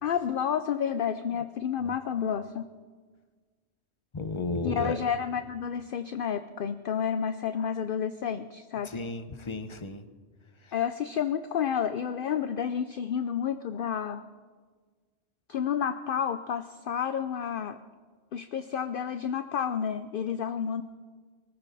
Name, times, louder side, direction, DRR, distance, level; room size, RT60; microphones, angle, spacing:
voice 1, 0.0-2.7 4.6-8.9 10.7-14.2 15.5-17.8 18.3-20.8, left 8 dB, 55° left, 11 dB, 0.7 m, -30 dB
voice 2, 4.1-5.0 8.8-10.0, left 3 dB, 25° left, 9 dB, 0.9 m, -33 dB
23.5 x 14.5 x 4.1 m, 1.5 s
omnidirectional pair, 1.3 m